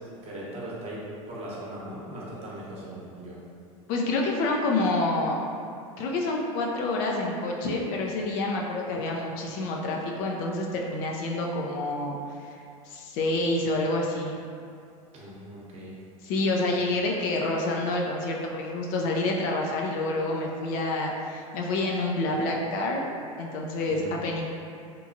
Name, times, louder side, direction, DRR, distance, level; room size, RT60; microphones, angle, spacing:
voice 1, 0.2-3.4 15.1-15.9 23.9-24.1, right 1 dB, 35° right, -6 dB, 0.9 m, -39 dB
voice 2, 3.9-5.4 6.0-12.2 12.4-12.6 12.9-14.4 16.2-23.0 23.4-24.5, left 2 dB, 50° left, 0 dB, 0.4 m, -28 dB
2.9 x 2.3 x 2.6 m, 2.4 s
hypercardioid pair, 90°, 18 cm